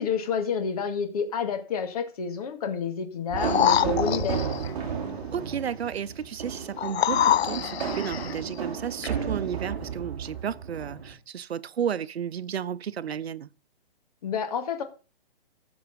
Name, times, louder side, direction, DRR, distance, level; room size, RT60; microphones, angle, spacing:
voice 1, 0.0-4.4 14.2-14.8, left 6 dB, 40° left, 2.0 m, -29 dB
sound 1, 3.3-11.1, right 6 dB, 35° right, 3.1 m, -33 dB
sound 2, 3.4-4.7 6.8-8.4 9.0-9.1, left 11 dB, 85° left, 0.5 m, -25 dB
voice 2, 5.3-13.5, right 8 dB, 90° right, 0.7 m, -33 dB
15.5 x 6.2 x 5.3 m
hypercardioid pair, 165°, 31 cm